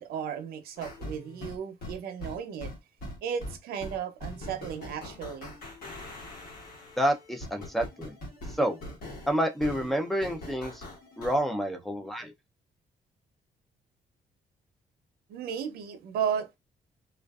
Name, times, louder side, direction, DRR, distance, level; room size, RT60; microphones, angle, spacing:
voice 1, 0.0-2.7 3.2-5.5 15.3-16.6, right 8 dB, 85° right, 0.6 m, -34 dB
sound 1, 0.8-11.4, left 1 dB, 80° left, 1.3 m, -42 dB
voice 2, 7.0-8.1 8.5-8.8 9.3-10.8 11.2-12.3, equal, ahead, 0.5 m, -28 dB
2.4 x 2.2 x 2.3 m
cardioid pair, 110°, 15 cm